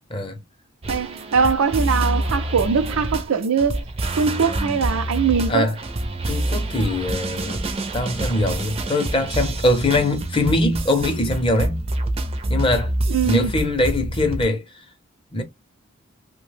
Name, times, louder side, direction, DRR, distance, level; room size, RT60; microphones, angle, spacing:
sound 1, 0.8-14.4, right 1 dB, 30° right, 0.4 m, -27 dB
voice 1, 0.9-3.8 4.2-5.7 13.1-13.5, right 6 dB, 90° right, 0.5 m, -21 dB
voice 2, 6.3-7.6 7.9-11.8 12.5-12.9 13.2-14.6 15.3-15.4, left 1 dB, 25° left, 0.6 m, -22 dB
2.8 x 2.1 x 3.1 m
head